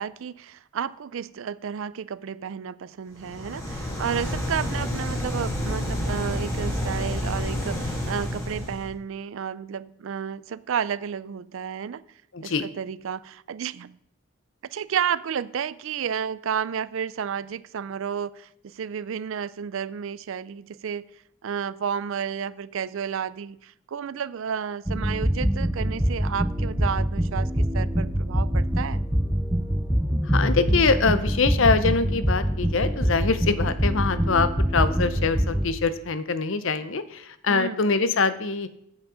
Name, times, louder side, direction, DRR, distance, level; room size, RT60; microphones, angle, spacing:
voice 1, 0.0-12.0 12.4-14.0 14.7-21.1 21.4-29.0 37.5-37.8, right 7 dB, 70° right, 18 dB, 0.4 m, -31 dB
sound 1, 3.2-8.9, equal, 15° left, 1.7 m, -29 dB
voice 2, 12.3-12.7 30.3-38.7, left 4 dB, 65° left, 13 dB, 0.7 m, -24 dB
sound 2, 24.9-35.7, equal, 5° right, 0.6 m, -24 dB
8.6 x 7.6 x 4.9 m, 0.73 s
head